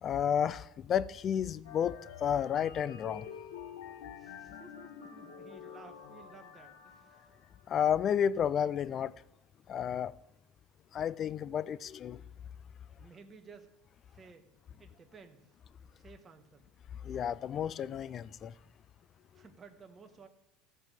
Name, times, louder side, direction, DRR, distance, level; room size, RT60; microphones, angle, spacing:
voice 1, 0.0-3.3 7.7-9.1 9.7-10.1 10.9-12.2 17.0-18.5, left 8 dB, 40° left, 0.4 m, -31 dB
sound 1, 1.6-7.7, left 7 dB, 85° left, 1.4 m, -48 dB
voice 2, 4.2-7.3 13.0-13.7 14.1-14.5 14.8-15.6 15.9-16.7 19.3-20.3, right 5 dB, 25° right, 1.5 m, -55 dB
14.5 x 5.5 x 7.6 m
supercardioid pair, 120°, 0 cm